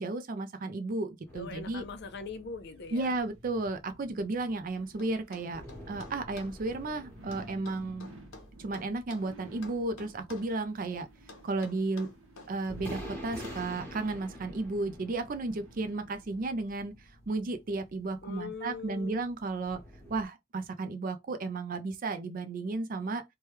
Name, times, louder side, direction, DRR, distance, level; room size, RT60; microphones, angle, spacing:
voice 1, 0.0-1.8 2.9-8.1 8.6-11.1 11.4-12.1 12.5-16.9 17.3-19.8 20.1-23.2, right 3 dB, 40° right, 0.4 m, -33 dB
voice 2, 1.3-3.2 18.2-19.3, left 4 dB, 50° left, 0.5 m, -41 dB
sound 1, 1.3-20.3, equal, 10° left, 1.1 m, -49 dB
sound 2, 2.7-16.6 17.0-17.1, right 1 dB, 75° right, 0.8 m, -55 dB
sound 3, 5.0-6.6 7.3-9.3 9.6-10.6 11.3-12.5 13.4-13.7, left 3 dB, 75° left, 0.8 m, -50 dB
3.1 x 2.2 x 3.0 m
head